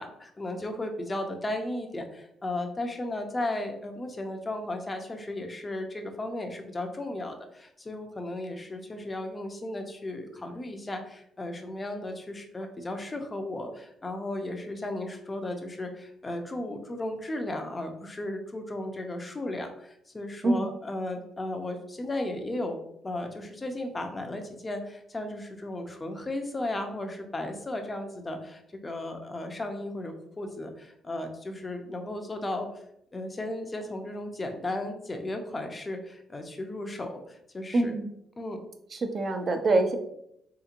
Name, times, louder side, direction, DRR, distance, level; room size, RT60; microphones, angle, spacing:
voice 1, 0.0-22.8 23.0-32.7 33.1-37.9 38.4-38.6, left 1 dB, 25° left, 5 dB, 0.5 m, -35 dB
voice 2, 37.7-38.1 38.9-40.0, right 2 dB, 45° right, 6 dB, 0.4 m, -25 dB
3.5 x 2.9 x 2.5 m, 0.76 s
cardioid pair, 90°, 0 cm